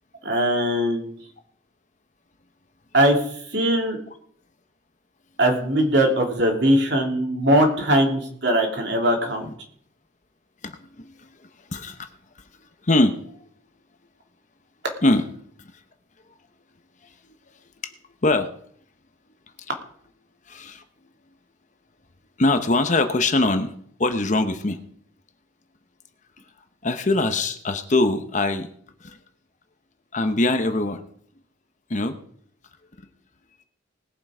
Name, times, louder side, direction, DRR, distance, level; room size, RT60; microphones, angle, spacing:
voice 1, 0.2-1.1 2.9-3.2 3.5-4.0 5.4-9.4, right 1 dB, 60° right, 2 dB, 3.0 m, -20 dB
voice 2, 10.6-11.3 11.7-12.1 12.8-13.5 15.0-15.3 17.0-17.1 17.8-17.9 18.2-18.5 19.6-19.7 20.5-20.8 22.4-23.7 24.0-24.8 26.8-28.7 29.0-29.2 30.1-31.0 31.9-32.2, left 2 dB, 40° left, 8 dB, 0.9 m, -22 dB
20.0 x 7.6 x 5.0 m, 0.62 s
head